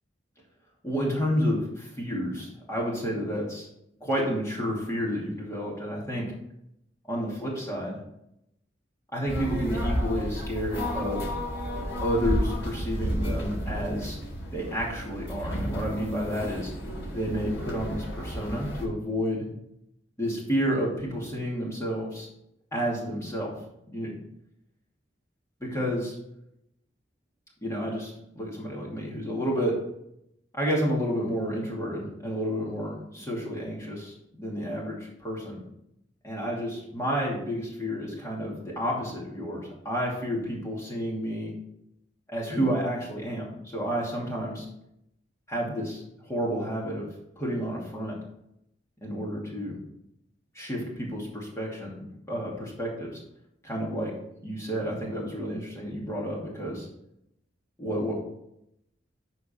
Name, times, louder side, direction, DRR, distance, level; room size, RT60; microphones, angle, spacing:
voice 1, 0.8-3.7 4.0-6.3 7.1-8.0 9.1-11.3 12.0-14.2 14.5-16.7 17.1-19.4 20.2-22.3 22.7-23.5 23.9-24.1 25.6-26.1 27.6-29.8 30.5-35.6 36.2-41.5 42.3-44.7 45.5-47.1 47.4-48.1 49.0-49.8 50.5-51.9 52.3-53.2 53.6-54.1 54.4-56.9 57.8-58.1, equal, 15° left, -3 dB, 2.6 m, -30 dB
sound 1, 9.3-18.8, equal, 80° left, 3.9 m, -32 dB
12.5 x 4.5 x 4.4 m, 0.79 s
head